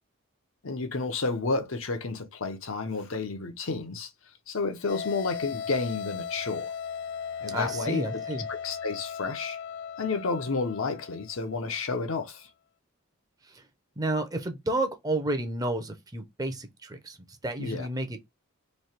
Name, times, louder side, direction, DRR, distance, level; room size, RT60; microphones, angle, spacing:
voice 1, 0.6-4.1 4.5-6.7 7.4-8.2 8.6-9.6 10.0-12.5 17.6-17.9, left 4 dB, 70° left, 0.8 m, -31 dB
sound 1, 4.9-11.8, left 7 dB, 50° left, 0.4 m, -37 dB
voice 2, 7.5-8.5 13.5-13.7 14.0-17.2 17.4-18.3, right 2 dB, 15° right, 0.6 m, -31 dB
3.2 x 2.8 x 4.3 m
head